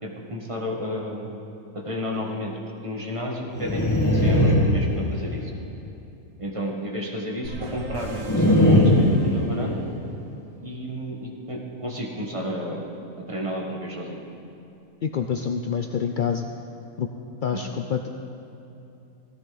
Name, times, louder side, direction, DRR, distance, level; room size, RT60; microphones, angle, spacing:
voice 1, 0.0-1.4 1.7-5.5 6.4-9.8 10.6-12.9 13.2-14.2 17.5-17.6, equal, 25° right, -1 dB, 1.4 m, -32 dB
sound 1, 3.6-5.4 8.3-9.9, left 1 dB, 15° left, 1.5 m, -19 dB
sound 2, 7.4-10.2, right 3 dB, 85° right, 1.8 m, -37 dB
voice 2, 15.0-16.5 17.0-17.1 17.4-18.1, left 7 dB, 80° left, 5 dB, 0.4 m, -26 dB
16.0 x 14.0 x 4.0 m, 2.8 s
omnidirectional pair, 1.5 m